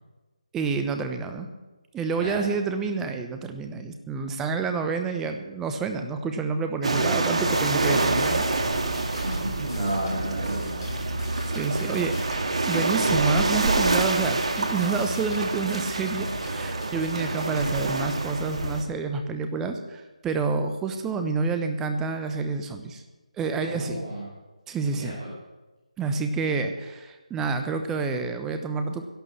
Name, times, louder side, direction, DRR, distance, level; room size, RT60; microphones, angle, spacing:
voice 1, 0.5-1.5 1.9-8.5 11.5-12.2 12.6-23.0 23.4-24.0 24.7-25.1 26.0-29.0, right 4 dB, 10° right, 7 dB, 0.9 m, -28 dB
sound 1, 6.8-18.8, right 2 dB, 60° right, 1.9 m, -26 dB
sound 2, 7.4-17.8, left 2 dB, 40° left, 6.5 m, -45 dB
voice 2, 9.1-10.8 23.6-24.3 24.9-25.3, right 1 dB, 30° right, -7 dB, 4.8 m, -32 dB
12.0 x 11.5 x 7.2 m, 1.2 s
figure-of-eight pair, 155°, 4 cm